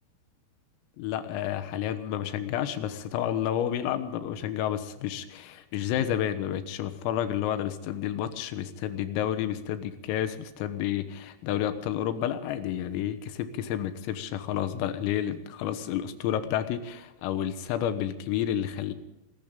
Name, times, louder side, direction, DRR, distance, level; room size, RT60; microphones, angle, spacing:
voice 1, 1.0-18.9, left 10 dB, 90° left, 10 dB, 3.9 m, -30 dB
26.0 x 14.0 x 3.8 m, 0.97 s
omnidirectional pair, 5.9 m